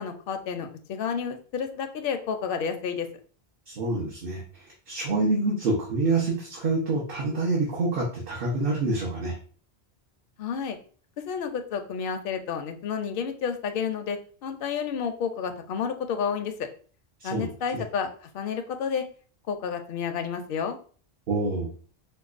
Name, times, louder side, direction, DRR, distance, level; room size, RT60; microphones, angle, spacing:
voice 1, 0.0-3.1 10.4-10.8 11.2-16.7 17.2-18.1 18.3-19.0 19.5-20.8, left 6 dB, 65° left, 6 dB, 0.7 m, -30 dB
voice 2, 3.7-4.4 4.9-9.4 17.2-17.8 21.3-21.7, right 3 dB, 65° right, -4 dB, 1.0 m, -27 dB
4.5 x 2.3 x 2.4 m, 0.42 s
omnidirectional pair, 1.0 m